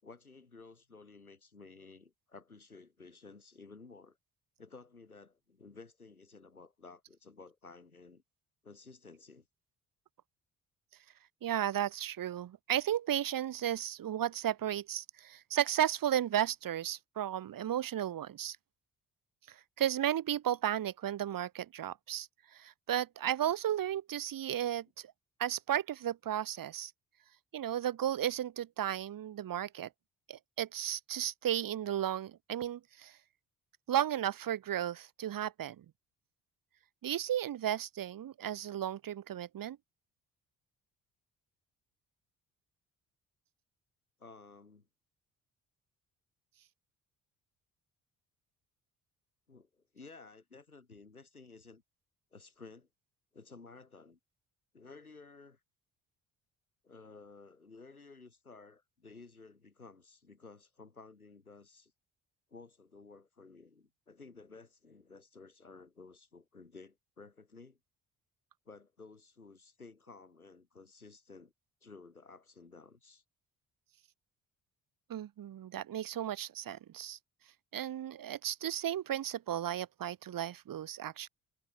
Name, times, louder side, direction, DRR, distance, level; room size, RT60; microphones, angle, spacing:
voice 1, 0.0-4.2 4.6-8.2 8.6-9.5 44.2-44.9 49.5-51.8 52.3-52.9 53.3-54.2 54.7-55.6 56.8-61.9 62.5-67.8 68.6-71.5 71.8-73.2, left 4 dB, 90° left, 6.4 m, -54 dB
voice 2, 11.4-18.6 19.5-25.1 25.4-26.9 27.5-29.9 30.3-33.2 33.9-35.8 37.0-39.8 75.1-77.2 77.7-81.3, right 11 dB, 50° right, 3.5 m, -34 dB
figure-of-eight pair, 45°, 42 cm